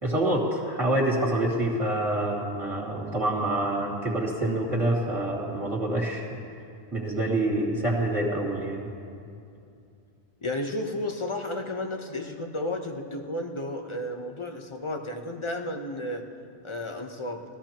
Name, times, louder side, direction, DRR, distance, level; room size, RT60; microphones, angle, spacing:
voice 1, 0.0-6.4 6.9-8.9, right 1 dB, 30° right, -3 dB, 2.3 m, -26 dB
voice 2, 10.4-16.2 16.6-17.4, left 1 dB, 30° left, 4 dB, 0.8 m, -32 dB
20.5 x 13.5 x 3.0 m, 2.6 s
omnidirectional pair, 1.1 m